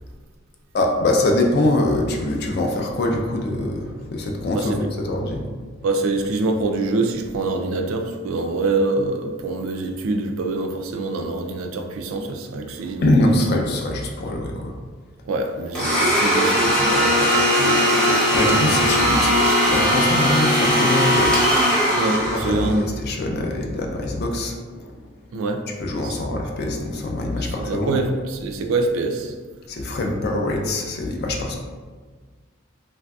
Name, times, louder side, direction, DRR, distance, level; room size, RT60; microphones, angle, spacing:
voice 1, 0.7-5.5 13.0-14.7 18.3-22.0 22.3-25.1 25.8-28.0 29.7-31.6, left 1 dB, 50° left, 1 dB, 0.4 m, -23 dB
voice 2, 5.8-13.3 15.2-18.9 22.0-22.9 25.3-25.6 26.0-26.2 27.6-29.3, right 2 dB, 70° right, 4 dB, 0.3 m, -25 dB
Domestic sounds home sounds, 15.7-22.8, equal, 5° left, 0.7 m, -19 dB
3.2 x 2.5 x 2.3 m, 1.5 s
head